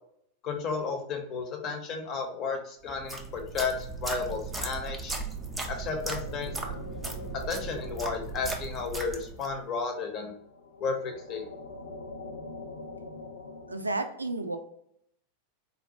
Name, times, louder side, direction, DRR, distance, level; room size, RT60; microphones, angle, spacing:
voice 1, 0.4-3.7 4.0-5.1 5.7-6.5 7.5-10.3 10.8-11.5, left 5 dB, 35° left, 3 dB, 0.7 m, -33 dB
sound 1, 2.9-9.6, right 3 dB, 10° right, 0.5 m, -37 dB
sound 2, 5.1-13.9, left 2 dB, 75° left, 0.4 m, -45 dB
voice 2, 13.7-14.6, right 2 dB, 80° right, 7 dB, 0.3 m, -31 dB
3.9 x 2.1 x 2.7 m, 0.70 s
figure-of-eight pair, 90°, 0 cm